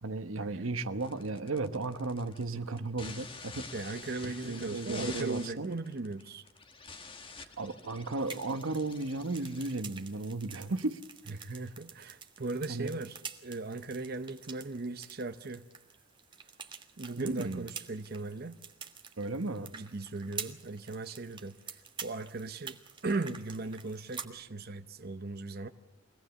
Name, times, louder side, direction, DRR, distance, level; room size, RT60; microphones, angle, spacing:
voice 1, 0.0-3.7 4.2-5.7 7.6-11.0 12.7-12.9 17.2-17.7 19.2-19.7, right 3 dB, 80° right, 1.1 m, -35 dB
sound 1, 1.0-10.5, left 4 dB, 25° left, 1.4 m, -48 dB
voice 2, 3.7-6.5 7.4-7.5 11.3-15.7 17.0-18.6 19.7-25.7, right 3 dB, 50° right, 0.8 m, -38 dB
sound 2, 8.2-24.3, right 6 dB, 25° right, 1.5 m, -48 dB
24.5 x 18.0 x 7.1 m
head